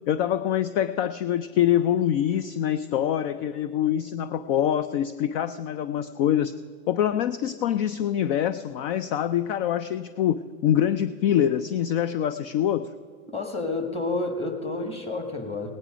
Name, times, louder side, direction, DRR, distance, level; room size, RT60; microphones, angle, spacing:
voice 1, 0.1-6.5 6.9-12.9, left 10 dB, 45° left, 14 dB, 0.5 m, -25 dB
voice 2, 13.3-15.7, left 2 dB, 15° left, 5 dB, 1.7 m, -29 dB
17.5 x 9.8 x 5.0 m, 2.1 s
hypercardioid pair, 130°, 42 cm